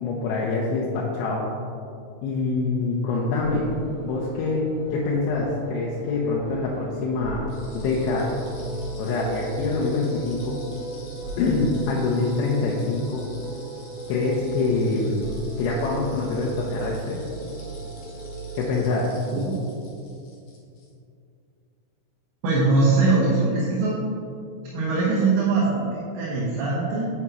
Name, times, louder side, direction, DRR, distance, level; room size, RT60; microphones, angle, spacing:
voice 1, 0.0-1.5 2.2-3.6 4.0-4.7 4.9-7.5 7.7-8.3 9.0-10.6 11.4-13.2 14.1-15.2 15.6-17.2 18.6-19.1, left 3 dB, 90° left, -4 dB, 3.3 m, -25 dB
sound 1, 3.4-18.9, right 3 dB, 85° right, 3.3 m, -37 dB
sound 2, 7.5-20.9, left 3 dB, 60° left, 2.2 m, -50 dB
voice 2, 22.4-24.0 24.7-27.1, right 3 dB, 70° right, -7 dB, 3.0 m, -22 dB
9.6 x 8.1 x 3.1 m, 2.5 s
omnidirectional pair, 5.3 m